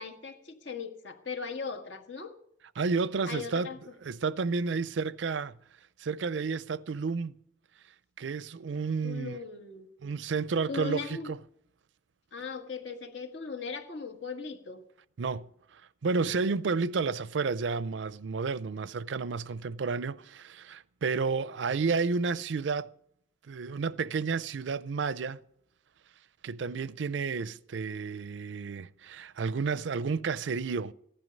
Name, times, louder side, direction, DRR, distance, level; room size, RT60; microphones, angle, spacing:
voice 1, 0.0-2.3 3.3-3.8 9.0-10.1 10.7-11.3 12.3-14.8, left 5 dB, 75° left, 1.6 m, -38 dB
voice 2, 2.8-3.7 4.0-5.6 6.0-7.4 8.2-9.4 10.0-11.4 15.2-22.9 23.5-25.4 26.4-30.9, right 4 dB, 75° right, 0.5 m, -31 dB
15.5 x 11.0 x 5.3 m
head